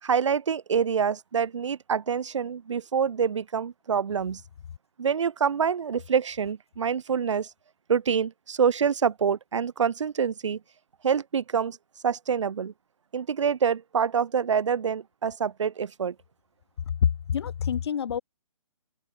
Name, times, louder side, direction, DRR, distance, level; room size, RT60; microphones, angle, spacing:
voice 1, 0.0-4.4 5.0-7.5 7.9-10.6 11.0-11.8 12.0-12.7 13.1-16.1, right 7 dB, 60° right, 5.7 m, -26 dB
voice 2, 17.0-18.2, left 8 dB, 50° left, 4.1 m, -26 dB
open air
hypercardioid pair, 165°, 18 cm